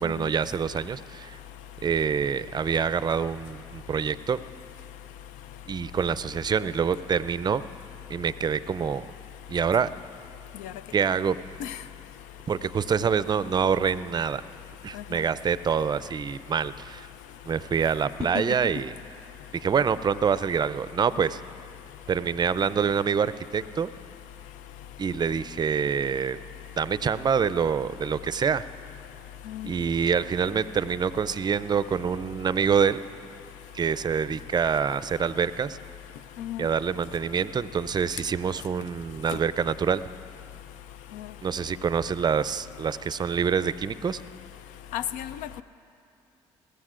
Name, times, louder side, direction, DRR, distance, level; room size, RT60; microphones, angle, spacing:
voice 1, 0.0-1.4 1.8-4.4 5.7-7.6 8.1-9.1 9.5-9.9 10.9-11.4 12.5-14.4 14.8-17.1 17.5-18.9 19.5-21.4 22.1-23.9 25.0-26.4 26.8-28.7 29.6-33.0 33.7-35.8 36.6-40.0 41.4-44.2, right 6 dB, 30° right, 0.5 m, -26 dB
voice 2, 44.9-45.6, left 12 dB, 75° left, 0.4 m, -33 dB
21.5 x 15.0 x 2.5 m
hypercardioid pair, 55°, 13 cm